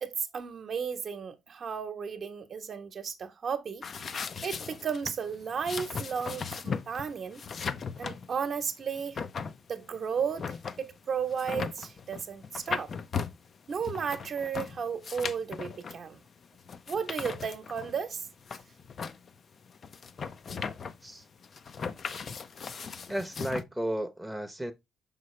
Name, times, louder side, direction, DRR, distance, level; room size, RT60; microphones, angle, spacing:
voice 1, 0.0-3.8 4.4-7.4 8.0-9.2 9.7-12.9 13.7-16.2 16.9-18.3, right 6 dB, 50° right, 1.0 m, -34 dB
sound 1, 3.8-23.6, left 5 dB, 50° left, 0.5 m, -38 dB
voice 2, 23.1-24.7, right 1 dB, ahead, 0.8 m, -33 dB
5.6 x 5.4 x 3.2 m
cardioid pair, 90°, 0 cm